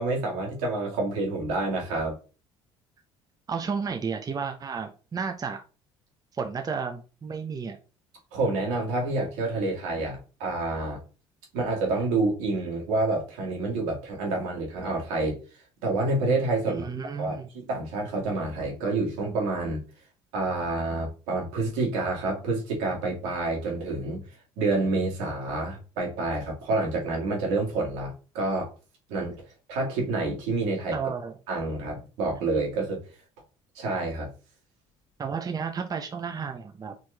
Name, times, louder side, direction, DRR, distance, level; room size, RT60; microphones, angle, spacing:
voice 1, 0.0-2.1 8.3-11.0 11.5-15.4 15.8-16.9 17.2-19.8 20.3-24.3 24.6-28.7 29.1-29.4 29.7-31.0 31.5-33.0 33.8-34.3, right 2 dB, 80° right, -1 dB, 2.1 m, -28 dB
voice 2, 3.5-5.6 6.3-7.8 16.6-17.5 30.9-31.4 35.2-36.9, right 5 dB, 30° right, 5 dB, 0.7 m, -32 dB
4.4 x 3.0 x 3.4 m, 0.34 s
supercardioid pair, 70°, 13 cm